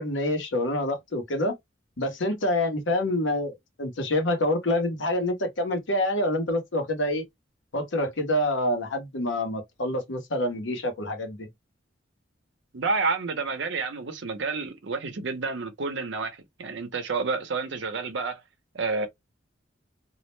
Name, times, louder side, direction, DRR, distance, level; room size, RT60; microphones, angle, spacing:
voice 1, 0.0-1.5 2.0-7.2 7.7-11.5, left 1 dB, 80° left, 0.9 m, -27 dB
voice 2, 12.7-18.4 18.7-19.1, right 4 dB, 70° right, 0.6 m, -29 dB
2.4 x 2.1 x 3.0 m
head